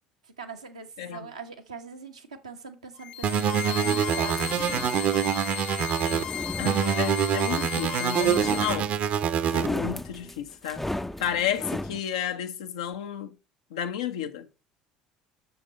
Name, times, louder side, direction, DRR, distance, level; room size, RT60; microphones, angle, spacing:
voice 1, 0.4-4.6, right 5 dB, 90° right, 1.1 m, -41 dB
voice 2, 1.0-1.3 6.0-8.9 9.5-10.8 11.2-13.4 13.7-14.5, left 9 dB, 75° left, 0.8 m, -32 dB
sound 1, 3.0-8.7, left 10 dB, 55° left, 1.2 m, -35 dB
sound 2, 3.2-6.2 6.6-9.7, right 8 dB, 50° right, 0.7 m, -25 dB
sound 3, 4.4-5.1 6.0-7.3 8.2-9.0 9.4-12.0, left 1 dB, 5° left, 0.5 m, -35 dB
6.8 x 5.4 x 4.0 m
hypercardioid pair, 65°, 3 cm